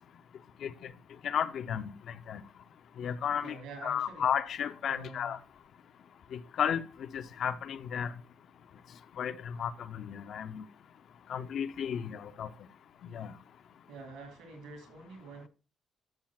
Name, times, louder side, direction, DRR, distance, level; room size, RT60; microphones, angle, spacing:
voice 1, 1.2-1.8 2.3-2.4 3.0-3.5 3.8-5.4 6.3-6.8 7.1-8.1 9.2-10.6 11.3-12.5 13.1-13.3, left 8 dB, 65° left, 0.6 m, -33 dB
voice 2, 3.4-4.3 4.9-5.4 13.9-15.5, right 3 dB, 90° right, 2.6 m, -47 dB
11.5 x 7.2 x 2.4 m
cardioid pair, 90°, 0 cm